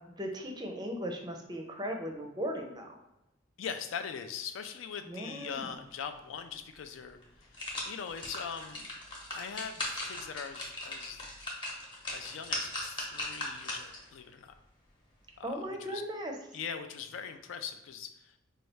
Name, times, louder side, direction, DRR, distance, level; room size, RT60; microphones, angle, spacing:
voice 1, 0.2-3.0 5.0-5.7 15.4-16.3, equal, 20° right, 3 dB, 0.4 m, -37 dB
voice 2, 3.6-7.2 7.5-8.9 9.3-11.3 12.1-14.5 15.4-16.0 16.5-18.4, left 7 dB, 75° left, 8 dB, 0.4 m, -41 dB
sound 1, 6.7-6.8 7.2-14.1 14.5-14.6, left 1 dB, 25° left, 0.8 m, -39 dB
4.1 x 2.3 x 3.3 m, 0.93 s
head